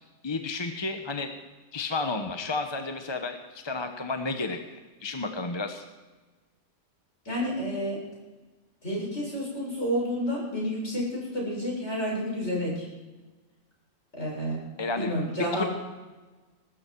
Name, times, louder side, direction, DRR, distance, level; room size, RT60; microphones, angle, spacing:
voice 1, 0.2-1.3 1.7-4.6 5.0-5.8 14.8-15.1 15.5-15.7, left 3 dB, 25° left, 6 dB, 1.0 m, -31 dB
voice 2, 7.3-8.0 8.8-12.9 14.1-14.6 14.9-15.7, equal, 60° left, -4 dB, 7.4 m, -30 dB
20.5 x 12.5 x 4.6 m, 1.2 s
omnidirectional pair, 1.3 m